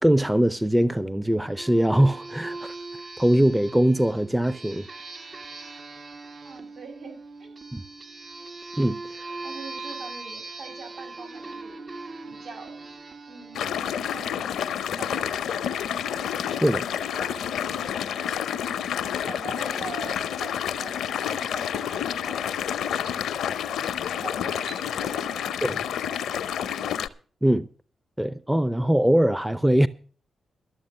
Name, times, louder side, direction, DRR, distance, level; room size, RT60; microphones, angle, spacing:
voice 1, 0.0-2.7 3.2-4.8 7.7-7.8 8.8-9.0 16.6-16.8 25.6-25.8 27.4-27.7 28.2-29.9, right 1 dB, 10° right, 0.6 m, -21 dB
sound 1, 1.5-14.8, right 3 dB, 50° right, 1.1 m, -40 dB
voice 2, 6.4-7.6 9.4-11.8 12.3-12.9 13.3-14.4 15.0-16.2 16.6-17.5 17.8-18.7 19.2-23.4 24.2-25.6 26.1-26.5 26.8-27.0, right 4 dB, 70° right, 6.1 m, -43 dB
sound 2, 13.5-27.1, left 9 dB, 80° left, 0.6 m, -29 dB
13.0 x 6.9 x 7.9 m
supercardioid pair, 45°, 0 cm